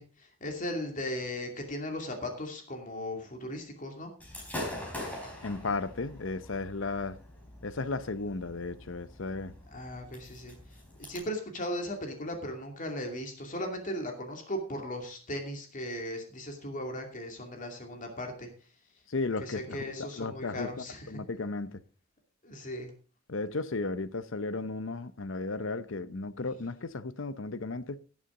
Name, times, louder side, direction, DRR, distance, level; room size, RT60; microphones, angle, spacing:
voice 1, 0.0-4.1 9.7-18.7 19.4-21.1 22.4-22.9, left 1 dB, 40° left, 2.6 m, -37 dB
Gunshot gunfire / Fireworks, 4.2-11.2, left 1 dB, 10° left, 4.1 m, -43 dB
voice 2, 5.4-7.2 7.6-9.5 19.1-21.8 23.3-28.0, left 3 dB, 70° left, 0.8 m, -35 dB
18.0 x 7.2 x 3.8 m
head